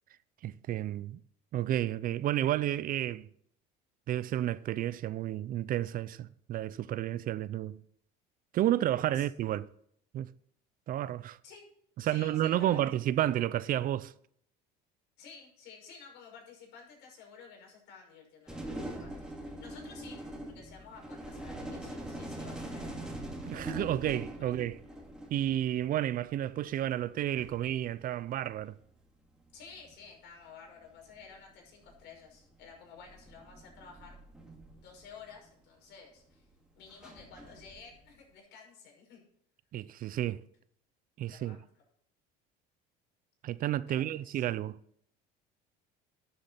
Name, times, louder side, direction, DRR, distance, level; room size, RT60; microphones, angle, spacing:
voice 1, 0.4-1.2 1.5-3.3 4.1-7.8 8.5-9.7 10.1-10.3 10.9-11.4 12.0-14.1 23.4-24.8 25.3-28.8 39.7-40.4 41.2-41.6 43.4-44.8, right 12 dB, 45° right, 0.5 m, -31 dB
voice 2, 12.0-12.9 15.2-22.9 24.4-24.5 29.5-34.2 34.7-36.5 36.7-39.2 41.3-41.8 43.9-44.4, left 5 dB, 65° left, 5.9 m, -52 dB
sound 1, 18.5-25.9 27.1-27.2 27.4-28.7 29.8-30.1 31.2-31.3 31.8-32.1 33.0-35.4 36.9-38.1, right 1 dB, 5° right, 2.5 m, -43 dB
11.5 x 7.8 x 5.6 m
cardioid pair, 115°, 19 cm